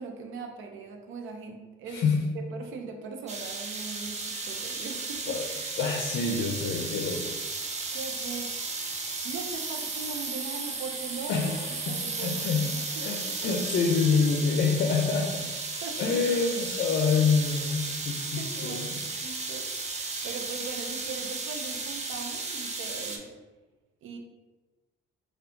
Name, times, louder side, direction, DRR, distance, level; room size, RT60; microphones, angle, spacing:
voice 1, 0.0-5.4 7.9-8.5 9.2-11.5 11.9-13.5 15.8-16.2 16.8-17.0 18.1-23.3 24.0-24.2, right 4 dB, 80° right, 4 dB, 0.5 m, -40 dB
voice 2, 1.9-2.3 5.3-5.4 5.8-7.3 11.3-15.5 16.0-18.9, left 5 dB, 65° left, 1 dB, 0.5 m, -27 dB
sound 1, 3.3-23.2, right 3 dB, 35° right, 0.6 m, -34 dB
4.2 x 2.3 x 2.6 m, 1.2 s
cardioid pair, 90°, 20 cm